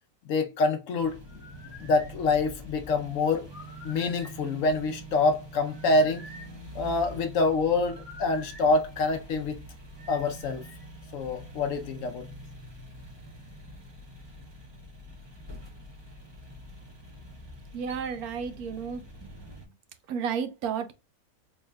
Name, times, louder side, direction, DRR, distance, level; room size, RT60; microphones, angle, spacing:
voice 1, 0.2-1.2 1.8-3.5 3.8-6.3 6.7-9.6 10.1-10.7 11.1-12.2, left 3 dB, 65° left, 0.9 m, -26 dB
sound 1, 1.0-19.6, equal, 20° right, 0.8 m, -45 dB
sound 2, 1.3-2.1 3.5-4.4 5.7-6.6 7.7-8.7 10.0-10.8, left 3 dB, 10° left, 0.9 m, -48 dB
voice 2, 17.7-19.3 20.1-20.9, right 7 dB, 80° right, 1.1 m, -32 dB
4.1 x 3.5 x 2.2 m
omnidirectional pair, 1.6 m